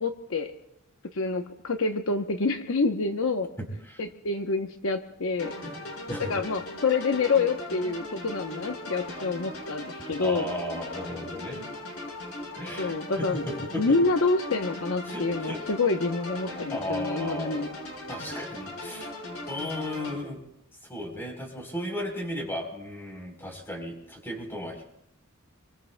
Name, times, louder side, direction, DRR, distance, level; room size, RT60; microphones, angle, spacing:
voice 1, 0.0-0.5 1.1-3.5 4.0-5.5 6.2-10.5 12.8-13.4 13.8-17.7, left 3 dB, 70° left, 6 dB, 0.9 m, -27 dB
voice 2, 3.6-4.0 5.6-5.7 6.1-6.4 10.2-11.6 12.6-14.0 15.1-15.6 16.7-17.7 18.1-19.1 19.5-20.4 20.9-24.8, left 1 dB, 10° left, 1 dB, 3.8 m, -35 dB
sound 1, 5.4-20.1, left 1 dB, 85° left, 5.5 m, -38 dB
27.5 x 23.0 x 2.2 m, 0.81 s
head